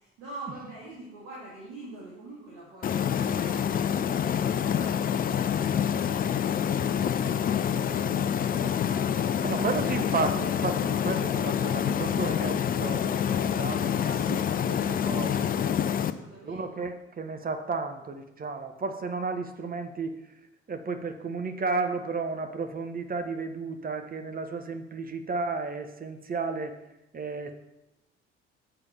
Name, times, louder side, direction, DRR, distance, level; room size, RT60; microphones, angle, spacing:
voice 1, 0.0-9.6 10.7-11.2 11.8-12.4 13.9-16.7, right 2 dB, 65° right, -6 dB, 2.1 m, -47 dB
sound 1, 2.8-16.1, left 8 dB, 30° left, 0.4 m, -27 dB
voice 2, 9.4-14.0 14.3-14.4 14.7-15.5 16.4-20.4 20.7-26.8 27.1-27.5, right 4 dB, 25° right, 7 dB, 0.9 m, -33 dB
6.7 x 4.8 x 5.7 m, 0.94 s
figure-of-eight pair, 50°, 33 cm